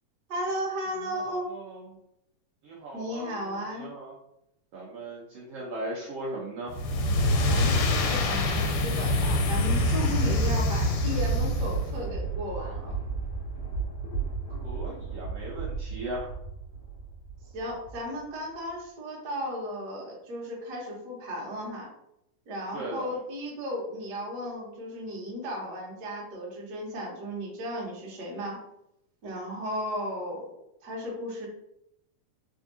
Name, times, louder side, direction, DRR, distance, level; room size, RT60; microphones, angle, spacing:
voice 1, 0.3-1.5 2.9-3.9 7.5-13.0 17.5-21.9 22.5-28.6 29.2-30.5 30.8-31.5, equal, 55° right, -3 dB, 1.1 m, -35 dB
voice 2, 1.3-1.8 2.6-4.1 4.7-6.7 14.6-16.3 22.7-23.1, right 1 dB, 80° right, -5 dB, 1.3 m, -38 dB
sound 1, 6.7-12.0, left 1 dB, 80° left, 2.1 m, -25 dB
Thunder, 11.0-18.2 18.6-18.7, right 5 dB, 65° left, 1.4 m, -34 dB
4.4 x 3.5 x 2.7 m, 0.80 s
omnidirectional pair, 3.7 m